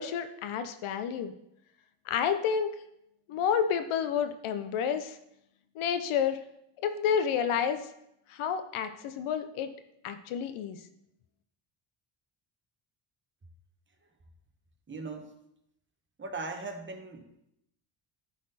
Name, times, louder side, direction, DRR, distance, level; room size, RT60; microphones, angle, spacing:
voice 1, 0.0-1.3 2.1-2.8 3.3-5.2 5.8-6.4 6.8-7.9 8.3-9.7 10.0-10.8, left 7 dB, 80° left, 9 dB, 0.7 m, -30 dB
voice 2, 14.9-15.3 16.2-17.3, right 3 dB, 25° right, 4 dB, 1.1 m, -39 dB
10.0 x 4.2 x 4.1 m, 0.79 s
cardioid pair, 95°, 49 cm